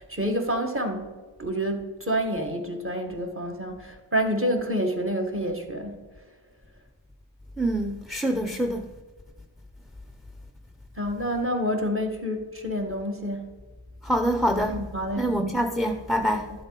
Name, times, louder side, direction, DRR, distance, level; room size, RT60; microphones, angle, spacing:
voice 1, 0.1-1.0 1.4-5.9 11.0-13.5 14.9-15.5 16.3-16.4, equal, 25° right, 1.7 m, -28 dB
voice 2, 7.6-8.9 14.0-14.8 15.2-16.5, equal, ahead, 0.5 m, -25 dB
12.0 x 7.6 x 4.1 m
wide cardioid pair, 80°, 49 cm